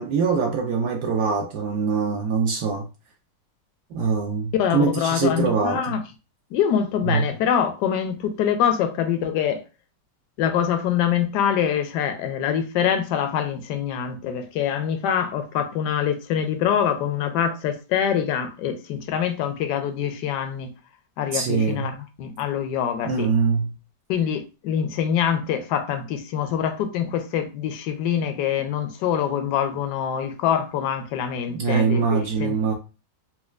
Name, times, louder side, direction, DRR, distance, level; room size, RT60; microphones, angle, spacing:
voice 1, 0.0-2.9 3.9-6.0 7.0-7.2 21.3-21.9 23.0-23.7 31.5-32.7, right 5 dB, 75° right, 1.1 m, -23 dB
voice 2, 4.5-6.0 6.5-9.6 10.4-20.7 21.2-23.3 24.1-32.6, left 8 dB, 75° left, 1.2 m, -24 dB
4.3 x 2.2 x 2.3 m
omnidirectional pair, 1.8 m